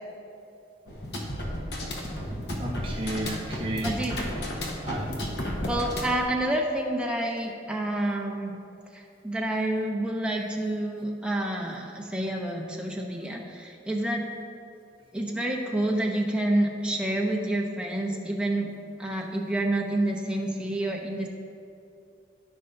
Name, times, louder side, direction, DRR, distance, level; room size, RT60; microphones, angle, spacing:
sound 1, 0.9-6.2, equal, 70° left, 1.2 m, -33 dB
voice 1, 2.6-4.0 4.8-5.2, right 1 dB, 30° right, -3 dB, 1.2 m, -33 dB
voice 2, 3.8-4.4 5.4-8.5 8.9-14.3 15.1-18.7 19.0-21.3, right 1 dB, 5° right, 0 dB, 0.8 m, -28 dB
14.0 x 5.5 x 2.6 m, 2.7 s
head